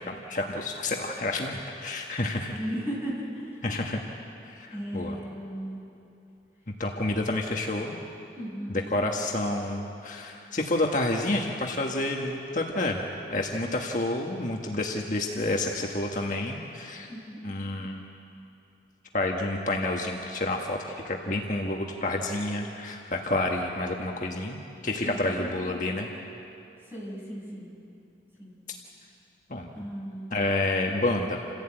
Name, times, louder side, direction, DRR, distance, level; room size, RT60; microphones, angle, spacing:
voice 1, 0.0-2.5 3.6-4.0 4.4-5.2 6.8-8.0 8.7-13.0 13.3-17.1 17.4-18.0 19.1-26.1 29.5-29.7 30.3-31.4, left 2 dB, 45° left, 0 dB, 1.5 m, -29 dB
voice 2, 2.5-3.6 4.7-5.8 8.4-8.8 17.1-17.4 25.0-25.3 26.9-27.7 28.4-28.5 29.7-30.4, equal, 10° right, -5 dB, 6.9 m, -36 dB
28.5 x 15.5 x 8.9 m, 2.8 s
head